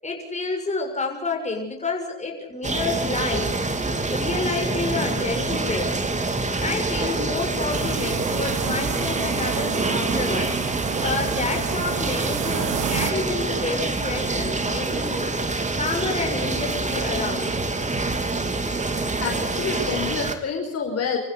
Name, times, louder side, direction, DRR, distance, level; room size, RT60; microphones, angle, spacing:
voice 1, 0.0-3.5 4.1-5.9 6.6-10.5 11.0-15.3 15.8-17.5, left 3 dB, 25° left, 2 dB, 7.2 m, -29 dB
sound 1, 2.6-20.4, right 3 dB, 25° right, 3.0 m, -26 dB
sound 2, 7.7-13.1, right 15 dB, 85° right, 0.9 m, -32 dB
voice 2, 18.9-21.2, left 5 dB, 55° left, 2 dB, 5.4 m, -28 dB
28.0 x 15.0 x 8.4 m, 0.73 s
cardioid pair, 90°, 30 cm